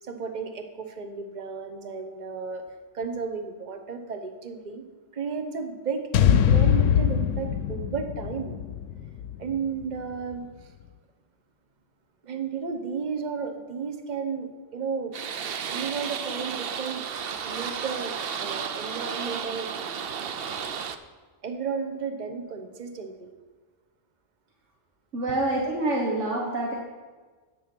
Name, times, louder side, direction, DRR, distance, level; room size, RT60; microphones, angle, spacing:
voice 1, 0.0-2.6 2.9-4.8 5.1-8.5 9.4-10.7 12.2-15.2 15.7-17.0 17.4-19.7 21.4-23.3, right 5 dB, 40° right, 6 dB, 1.1 m, -33 dB
sound 1, 6.1-10.4, left 9 dB, 85° left, 0.9 m, -23 dB
sound 2, 15.1-21.0, right 7 dB, 55° right, 0.8 m, -33 dB
voice 2, 25.1-26.8, right 2 dB, 85° right, -1 dB, 1.7 m, -26 dB
10.5 x 8.8 x 6.1 m, 1.4 s
omnidirectional pair, 1.2 m